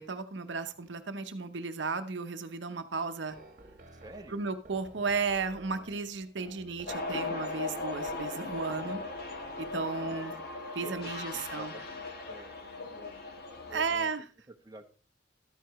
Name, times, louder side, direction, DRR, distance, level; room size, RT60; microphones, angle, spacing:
voice 1, 0.0-3.4 4.3-9.0 9.6-10.3 10.7-11.7 13.7-14.2, right 4 dB, 70° right, 9 dB, 0.9 m, -34 dB
sound 1, 3.3-10.0, right 2 dB, 45° right, 1.4 m, -52 dB
voice 2, 3.9-4.5 8.4-8.5 10.8-11.9 12.2-13.3 13.7-14.1 14.6-14.8, right 2 dB, 20° right, 4 dB, 0.9 m, -49 dB
sound 2, 6.9-14.0, left 3 dB, 55° left, 1.5 m, -38 dB
12.0 x 9.4 x 3.1 m, 0.36 s
head